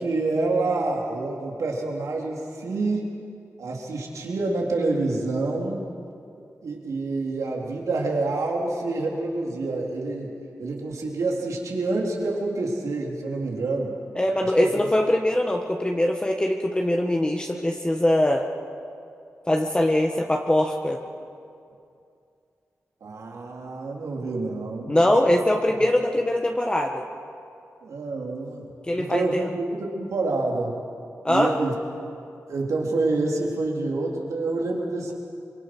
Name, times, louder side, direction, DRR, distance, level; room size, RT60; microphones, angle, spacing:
voice 1, 0.0-3.1 3.6-5.9 6.6-13.9 14.4-14.7 23.0-25.4 27.8-28.6 29.0-30.8 31.3-31.7 32.5-35.1, right 3 dB, 85° right, -1 dB, 3.7 m, -27 dB
voice 2, 14.2-18.4 19.5-21.0 24.9-27.0 28.9-29.5 31.2-31.5, left 1 dB, 15° left, 2 dB, 1.5 m, -22 dB
25.5 x 23.5 x 6.2 m, 2.5 s
cardioid pair, 75°, 5 cm